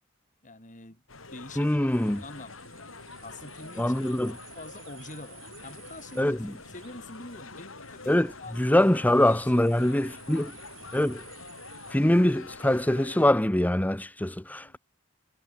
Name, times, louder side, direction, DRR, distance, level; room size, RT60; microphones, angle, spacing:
voice 1, 0.4-1.0 1.3-1.8 2.2-4.1 4.5-6.4 6.6-8.1 8.4-8.8 9.2-9.7 14.4-14.8, left 2 dB, 40° left, 5.8 m, -45 dB
sound 1, 1.1-13.3, left 3 dB, 75° left, 5.5 m, -46 dB
voice 2, 1.6-2.2 3.8-4.4 6.2-6.5 8.1-8.3 8.6-10.5 10.9-11.2 11.9-14.8, left 1 dB, 10° left, 0.7 m, -23 dB
sound 2, 1.9-11.9, right 9 dB, 65° right, 6.6 m, -54 dB
head